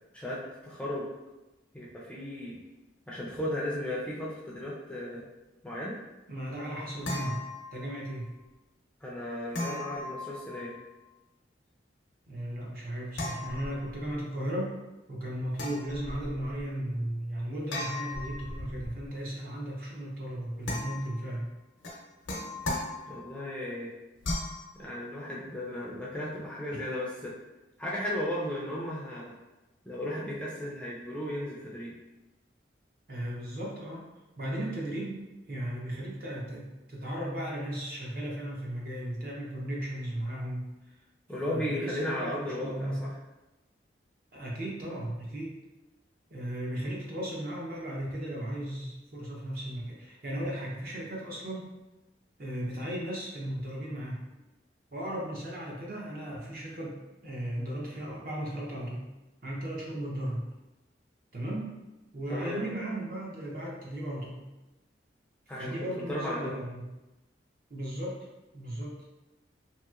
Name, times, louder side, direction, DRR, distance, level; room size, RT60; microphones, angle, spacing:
voice 1, 0.1-1.1 1.7-2.6 3.1-5.2 5.6-5.9 9.0-10.8 23.1-23.9 24.7-27.3 27.8-29.3 29.9-31.9 41.3-43.1 62.3-62.6 65.5-65.7 66.1-66.6, left 1 dB, 5° left, -6 dB, 0.4 m, -35 dB
voice 2, 6.3-7.4 7.7-8.3 12.3-14.7 15.1-21.5 26.7-26.8 33.1-34.0 34.4-35.2 35.5-40.7 41.5-43.1 44.3-45.5 46.3-51.7 52.4-54.2 54.9-59.1 59.4-60.4 61.3-61.7 62.1-64.5 65.5-66.9 67.7-68.2 68.5-69.0, right 1 dB, 50° right, -3 dB, 0.7 m, -36 dB
sound 1, 6.5-8.1 9.5-10.9 13.1-14.2 15.5-16.6 17.7-19.1 20.6-21.3 21.8-23.4 24.2-24.7, left 2 dB, 85° left, 0.7 m, -37 dB
2.9 x 2.8 x 2.4 m, 1.0 s
head